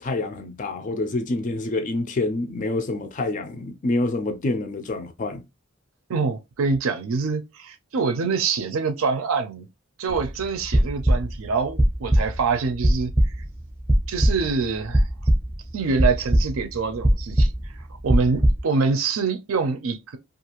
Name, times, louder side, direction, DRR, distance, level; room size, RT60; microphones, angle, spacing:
voice 1, 0.0-5.4, left 2 dB, 35° left, 0.4 m, -27 dB
voice 2, 6.1-9.7 10.0-13.3 14.1-15.1 15.7-17.5 18.0-20.2, right 4 dB, 75° right, 0.5 m, -25 dB
sound 1, 10.1-10.3 10.6-11.5 11.8-12.4 12.8-13.5 13.9-14.6 14.9-15.6 16.0-16.8 17.0-18.6, right 1 dB, 10° right, 0.6 m, -20 dB
2.4 x 2.4 x 2.9 m
head